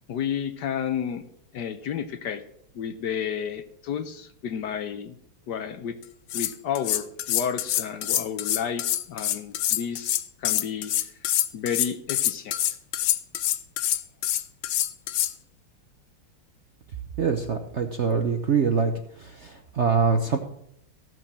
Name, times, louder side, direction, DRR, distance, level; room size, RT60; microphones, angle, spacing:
voice 1, 0.1-1.2 1.5-2.4 2.7-5.2 5.5-6.0 6.3-10.1 10.4-10.9 11.5-12.6 13.9-14.0, left 8 dB, 65° left, 10 dB, 1.2 m, -31 dB
sound 1, 6.0-15.3, left 13 dB, 85° left, 1.5 m, -26 dB
voice 2, 17.2-18.9 19.2-20.4, right 5 dB, 55° right, 5 dB, 0.8 m, -24 dB
15.5 x 6.2 x 7.3 m, 0.74 s
omnidirectional pair, 2.2 m